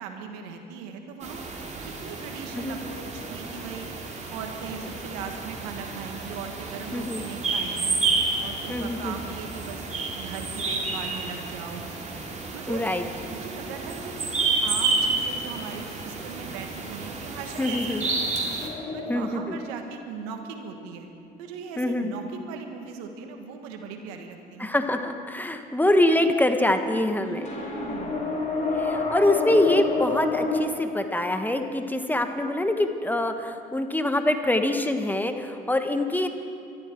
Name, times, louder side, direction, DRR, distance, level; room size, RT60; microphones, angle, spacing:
voice 1, 0.0-1.4 2.0-3.9 4.3-8.0 8.4-9.8 10.1-11.9 12.5-12.8 13.3-18.4 18.9-21.1 21.4-24.7 27.2-28.3 29.5-29.6, right 6 dB, 85° right, 4 dB, 1.6 m, -39 dB
sound 1, 1.2-18.7, right 3 dB, 35° right, 2.9 m, -30 dB
voice 2, 6.9-7.2 8.7-9.2 12.7-13.0 17.6-18.0 19.1-19.6 21.8-22.1 24.6-27.4 28.7-36.3, left 1 dB, 10° left, 6 dB, 1.4 m, -24 dB
sound 2, 18.6-21.0 27.4-30.6, left 3 dB, 40° left, 3.5 m, -29 dB
22.5 x 13.5 x 4.6 m, 2.4 s
supercardioid pair, 70°, 19 cm